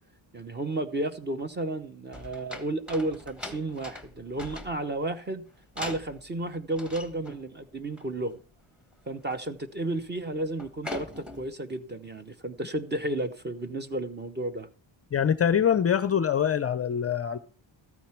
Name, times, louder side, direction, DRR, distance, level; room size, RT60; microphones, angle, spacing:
voice 1, 0.3-5.4 5.8-8.4 9.1-14.7, right 2 dB, 20° right, 0.9 m, -32 dB
sound 1, 2.1-5.1 5.7-6.4 6.7-7.4 7.8-8.0 8.3-8.5 8.9-9.3 9.7-10.1 10.5-11.5, left 2 dB, ahead, 1.3 m, -42 dB
voice 2, 15.1-17.4, left 8 dB, 30° left, 0.5 m, -24 dB
14.0 x 9.3 x 4.4 m
cardioid pair, 150°, 46 cm